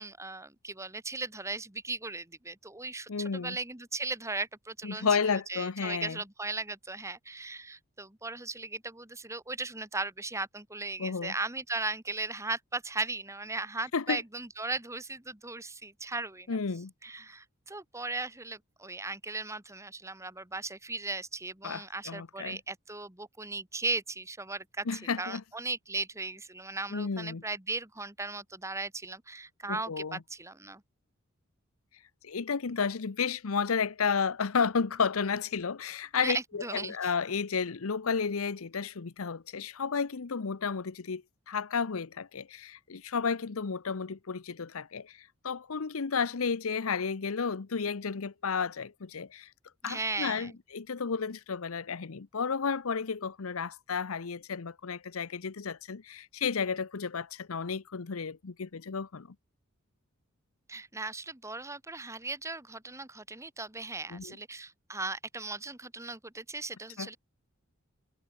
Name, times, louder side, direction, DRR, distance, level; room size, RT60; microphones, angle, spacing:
voice 1, 0.0-5.1 5.5-16.6 17.0-30.8 36.2-37.0 49.8-50.5 60.7-67.2, right 3 dB, 15° right, 2.0 m, -37 dB
voice 2, 3.1-3.6 4.8-6.2 11.0-11.3 13.9-14.2 16.5-16.9 21.6-22.6 24.9-25.4 26.9-27.4 29.7-30.2 32.2-49.5 49.8-59.3 64.1-64.3 67.0-67.1, left 5 dB, 90° left, 0.8 m, -32 dB
head